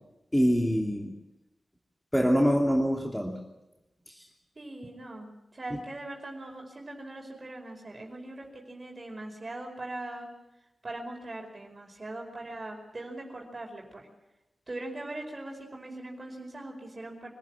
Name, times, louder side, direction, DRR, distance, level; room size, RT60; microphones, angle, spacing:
voice 1, 0.3-1.1 2.1-3.4 4.1-4.3 5.7-5.8, equal, 5° left, 0 dB, 2.8 m, -25 dB
voice 2, 4.5-10.3 10.8-14.1 14.7-17.3, right 2 dB, 35° right, 0 dB, 5.0 m, -41 dB
25.5 x 14.5 x 8.9 m, 0.96 s
wide cardioid pair, 95°, 0 cm